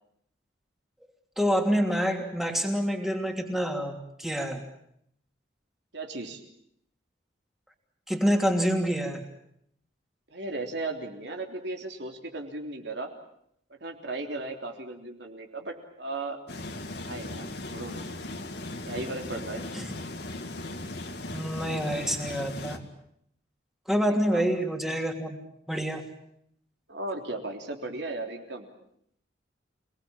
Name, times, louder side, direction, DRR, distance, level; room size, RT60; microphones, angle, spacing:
voice 1, 1.4-4.6 8.1-9.2 19.7-19.9 21.3-22.8 23.9-25.4 25.7-26.0, equal, ahead, 3 dB, 3.0 m, -27 dB
voice 2, 5.9-6.4 10.3-13.1 13.8-16.4 17.0-18.1 18.9-19.7 24.3-24.5 26.9-28.7, right 2 dB, 65° right, 3 dB, 3.6 m, -36 dB
sound 1, 16.5-22.8, left 2 dB, 60° left, 2.4 m, -38 dB
28.5 x 19.5 x 8.8 m, 0.72 s
head